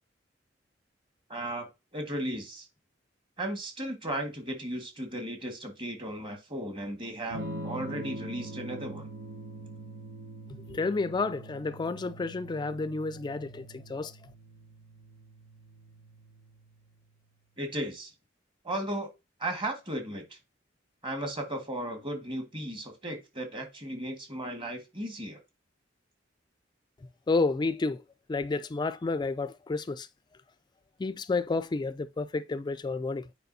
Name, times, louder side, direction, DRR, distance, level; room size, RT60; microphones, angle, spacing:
voice 1, 1.3-1.7 1.9-2.6 3.4-9.1 17.6-18.1 18.6-19.1 19.4-20.4 21.0-25.4, right 1 dB, 25° right, 1.7 m, -35 dB
Electric guitar / Strum, 7.3-17.1, right 1 dB, 80° right, 1.0 m, -44 dB
voice 2, 10.7-14.1 27.3-28.0 28.3-30.1 31.0-33.2, left 3 dB, 25° left, 0.3 m, -30 dB
9.2 x 4.8 x 2.7 m
head